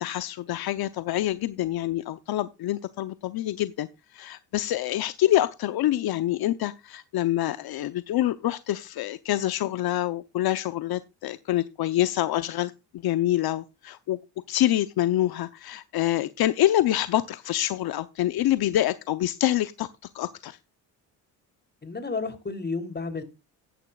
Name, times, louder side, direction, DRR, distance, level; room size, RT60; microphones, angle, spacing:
voice 1, 0.0-14.2 14.5-19.9 20.1-20.6, left 13 dB, 65° left, 0.8 m, -26 dB
voice 2, 21.8-23.2, left 4 dB, 25° left, 3.3 m, -31 dB
14.5 x 10.5 x 2.4 m
supercardioid pair, 70°, 41 cm